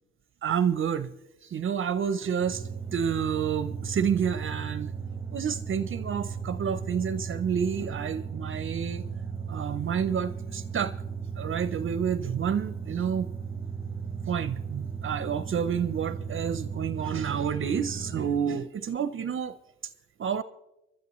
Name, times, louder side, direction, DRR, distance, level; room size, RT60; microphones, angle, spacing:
voice 1, 0.4-1.1 1.4-4.9 5.3-9.0 9.5-10.9 11.4-13.3 14.3-19.6 20.2-20.4, right 7 dB, 45° right, 0.6 m, -29 dB
sound 1, 2.4-18.5, right 6 dB, 10° right, 0.8 m, -36 dB
24.0 x 12.5 x 3.0 m
cardioid pair, 90°, 30 cm